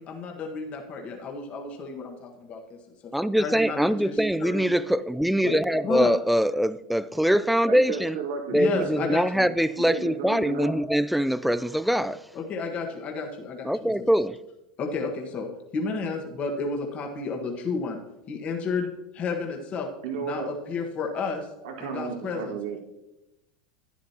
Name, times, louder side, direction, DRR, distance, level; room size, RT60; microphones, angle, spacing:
voice 1, 0.0-2.6 3.0-3.1 3.4-4.7 5.4-6.1 8.5-9.5 12.3-14.1 14.8-18.0 18.3-18.9 19.1-19.9 20.2-21.5 21.8-22.6, left 4 dB, 40° left, 1.5 m, -32 dB
voice 2, 3.1-8.2 8.5-12.2 13.6-14.4, equal, ahead, 0.4 m, -23 dB
voice 3, 4.2-4.6 7.7-9.1 9.8-10.7 20.0-20.5 21.6-22.8, right 6 dB, 90° right, 2.1 m, -34 dB
11.5 x 9.8 x 2.9 m
supercardioid pair, 120°, 4 cm